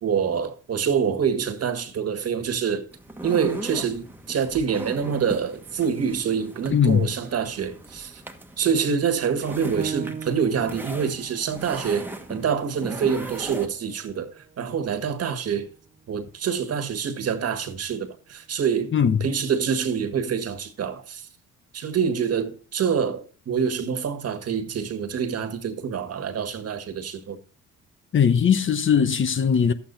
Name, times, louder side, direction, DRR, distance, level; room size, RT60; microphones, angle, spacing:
voice 1, 0.0-2.9 3.2-8.2 8.6-15.7 16.1-18.9 19.2-21.3 21.7-27.4, right 7 dB, 55° right, 1.7 m, -26 dB
sound 1, 2.9-13.7, right 1 dB, 5° right, 1.4 m, -39 dB
voice 2, 6.7-7.1 18.9-19.2 28.1-29.7, left 7 dB, 40° left, 0.9 m, -19 dB
Piano, 9.8-14.9 15.4-15.5 16.1-16.6, right 5 dB, 25° right, 0.9 m, -39 dB
11.5 x 8.4 x 4.0 m
cardioid pair, 90°, 30 cm